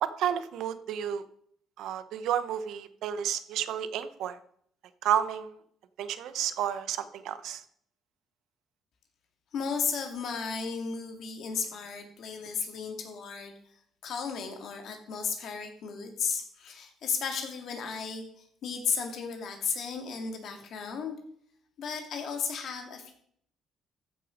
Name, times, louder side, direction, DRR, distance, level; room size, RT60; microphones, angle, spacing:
voice 1, 0.0-1.2 1.8-4.4 5.0-5.6 6.0-7.6, right 10 dB, 75° right, 12 dB, 0.9 m, -31 dB
voice 2, 9.5-13.5 14.0-21.1 21.8-23.1, left 6 dB, 60° left, 4 dB, 2.2 m, -34 dB
14.5 x 6.3 x 5.1 m, 0.66 s
cardioid pair, 115°, 0 cm